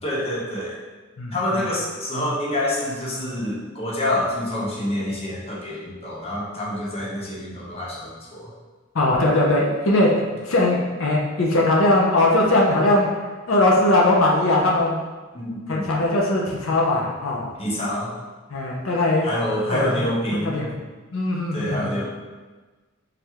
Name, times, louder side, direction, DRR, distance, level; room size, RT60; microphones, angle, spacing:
voice 1, 0.0-0.8 1.3-8.5 15.3-15.9 17.6-18.1 19.2-20.6 21.5-22.0, left 1 dB, 30° left, -4 dB, 0.8 m, -27 dB
voice 2, 8.9-13.1 13.5-15.0 15.7-17.4 18.5-19.3 19.7-19.9 20.4-20.7 21.1-21.9, left 1 dB, 80° left, -2 dB, 0.6 m, -20 dB
3.3 x 2.5 x 4.4 m, 1.3 s
head